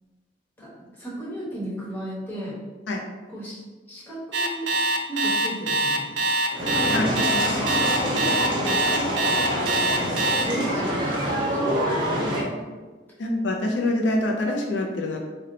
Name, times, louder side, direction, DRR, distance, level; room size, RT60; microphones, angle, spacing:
voice 1, 0.6-2.6 3.3-3.6 3.9-4.7 5.1-6.2 7.0-7.2 7.5-9.3 10.4-12.4, right 1 dB, 10° left, -8 dB, 1.0 m, -35 dB
Alarm, 4.3-10.4, right 2 dB, 70° right, 0.4 m, -23 dB
sound 1, 6.5-12.4, equal, 30° right, 0.8 m, -26 dB
voice 2, 13.2-15.2, left 1 dB, 80° left, 1 dB, 0.4 m, -25 dB
2.8 x 2.1 x 3.8 m, 1.3 s
head